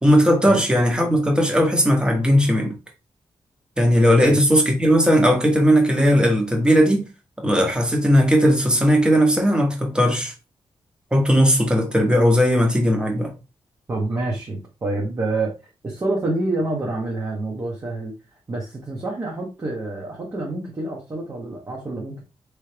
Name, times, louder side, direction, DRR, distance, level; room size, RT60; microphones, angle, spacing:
voice 1, 0.0-2.8 3.8-7.1 7.4-10.3 11.1-13.3, equal, 10° right, 1.1 m, -17 dB
voice 2, 3.9-4.4 13.9-15.5 15.8-18.1 18.5-22.3, right 2 dB, 35° right, 1.1 m, -27 dB
3.5 x 3.2 x 3.3 m
wide cardioid pair, 150°, 10 cm